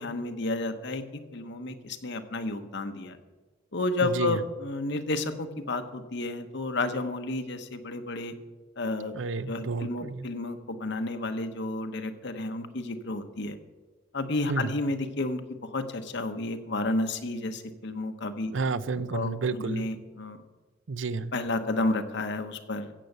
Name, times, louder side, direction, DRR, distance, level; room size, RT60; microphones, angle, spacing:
voice 1, 0.0-3.2 3.7-8.3 8.8-9.1 9.5-13.6 14.1-15.4 15.7-18.5 19.1-20.4 21.3-22.9, left 2 dB, 65° left, 8 dB, 1.1 m, -31 dB
voice 2, 4.0-4.4 9.1-10.3 14.5-14.7 18.5-19.9 20.9-21.3, right 4 dB, 75° right, 16 dB, 0.6 m, -30 dB
15.0 x 7.9 x 6.7 m, 1.2 s
head